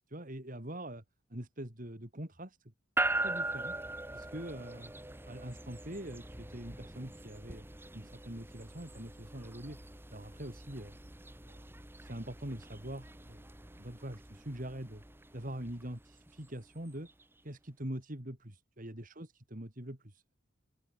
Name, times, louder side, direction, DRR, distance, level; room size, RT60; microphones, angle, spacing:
voice 1, 0.1-1.0 1.3-2.7 3.2-3.7 4.1-4.9 5.3-7.7 7.9-9.8 10.1-10.9 11.5-11.6 12.0-13.5 13.8-15.0 15.3-17.1 17.4-20.3, right 1 dB, 40° right, 3.5 m, -43 dB
sound 1, 3.0-17.2, right 2 dB, 10° right, 1.5 m, -41 dB
open air
head